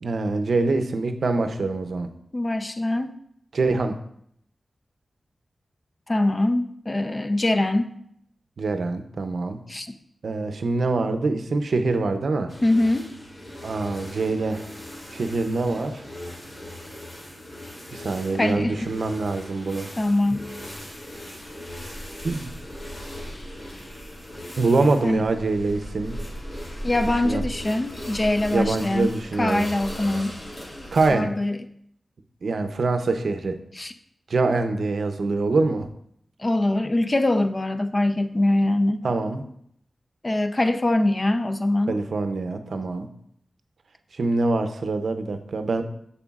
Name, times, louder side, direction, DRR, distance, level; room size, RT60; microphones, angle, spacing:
voice 1, 0.0-2.1 3.5-4.0 8.6-9.6 10.2-12.5 13.6-14.7 15.1-16.0 17.9-19.9 22.2-22.5 24.6-26.2 27.2-27.4 28.5-29.7 30.9-31.3 32.4-33.6 34.3-35.9 39.0-39.4 41.9-43.1 44.1-45.8, right 3 dB, 80° right, 8 dB, 0.6 m, -24 dB
voice 2, 2.3-3.1 6.1-8.0 9.7-9.9 12.6-13.1 18.4-18.9 20.0-20.4 25.0-25.2 26.8-30.4 31.1-31.6 33.8-33.9 36.4-39.0 40.2-42.0, left 1 dB, 35° left, 7 dB, 0.6 m, -23 dB
sound 1, 12.5-31.1, equal, 60° left, 2.8 m, -38 dB
7.1 x 7.0 x 2.4 m, 0.70 s
cardioid pair, 55°, 0 cm